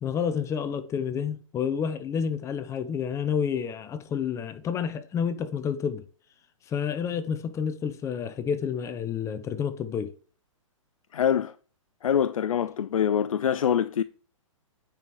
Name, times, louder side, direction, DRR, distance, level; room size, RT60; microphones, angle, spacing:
voice 1, 0.0-6.0 6.7-10.1, left 7 dB, 15° left, 0.9 m, -29 dB
voice 2, 11.1-11.5 12.0-14.0, left 8 dB, 85° left, 0.5 m, -24 dB
8.9 x 5.4 x 4.7 m
hypercardioid pair, 140°, 17 cm